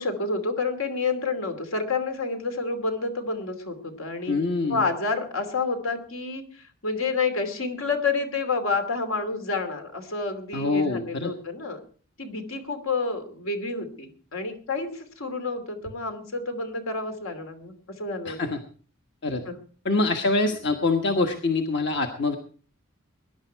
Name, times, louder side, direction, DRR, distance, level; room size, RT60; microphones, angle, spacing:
voice 1, 0.0-4.4 4.7-11.8 12.2-18.4 19.5-19.6, left 3 dB, 75° left, 7 dB, 2.8 m, -29 dB
voice 2, 4.3-4.9 10.5-11.3 18.2-18.6 19.2-19.4 19.8-22.4, left 3 dB, 55° left, 4 dB, 1.4 m, -25 dB
21.0 x 11.0 x 4.6 m, 0.41 s
head